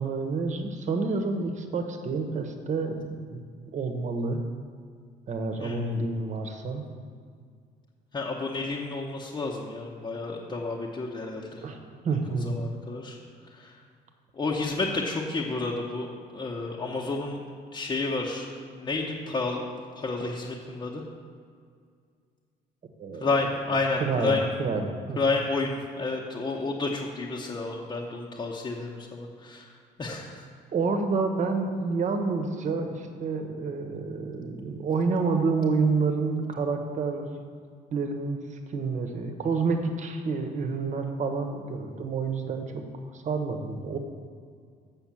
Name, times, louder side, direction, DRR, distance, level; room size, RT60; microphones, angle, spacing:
voice 1, 0.0-3.4 3.7-4.4 5.3-6.8 11.6-11.8 12.0-12.5 23.0-23.3 24.0-25.2 30.7-37.4 37.9-42.8 43.1-44.0, right 4 dB, 45° right, 5 dB, 1.2 m, -29 dB
voice 2, 8.1-11.6 12.4-13.2 13.5-13.7 14.3-17.4 17.7-19.6 20.0-21.0 23.2-24.5 25.2-29.7 30.0-30.4, left 3 dB, 25° left, -3 dB, 1.0 m, -30 dB
7.6 x 6.2 x 7.3 m, 2.1 s
cardioid pair, 110°, 17 cm